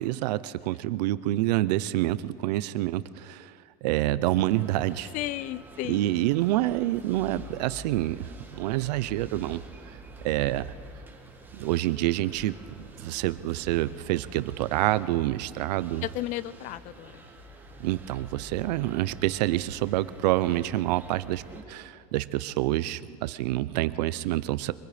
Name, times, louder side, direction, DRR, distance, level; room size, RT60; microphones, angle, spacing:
voice 1, 0.0-3.5 3.8-5.1 5.9-9.6 10.2-10.7 11.5-12.6 13.0-16.1 17.8-21.4 21.7-24.7, right 16 dB, 85° right, 16 dB, 0.7 m, -27 dB
sound 1, 4.4-21.6, right 1 dB, 10° right, 2.0 m, -47 dB
voice 2, 5.1-6.1 16.0-17.2, left 15 dB, 40° left, 18 dB, 0.5 m, -34 dB
24.5 x 23.0 x 5.1 m, 2.3 s
supercardioid pair, 160°, 21 cm